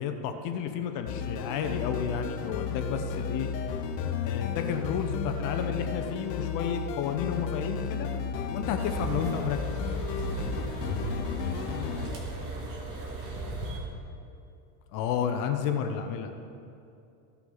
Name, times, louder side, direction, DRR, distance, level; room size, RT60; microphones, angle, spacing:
voice 1, 0.0-3.5 4.2-8.1 8.5-9.6 14.9-16.3, left 7 dB, 40° left, 7 dB, 0.7 m, -31 dB
sound 1, 1.1-12.1, left 6 dB, 80° left, 1.0 m, -33 dB
sound 2, 8.8-13.8, right 2 dB, 40° right, 2.1 m, -37 dB
voice 2, 10.6-11.0 11.5-13.7, right 2 dB, 60° right, 1 dB, 2.1 m, -47 dB
15.5 x 5.8 x 4.0 m, 2.6 s
supercardioid pair, 140°, 48 cm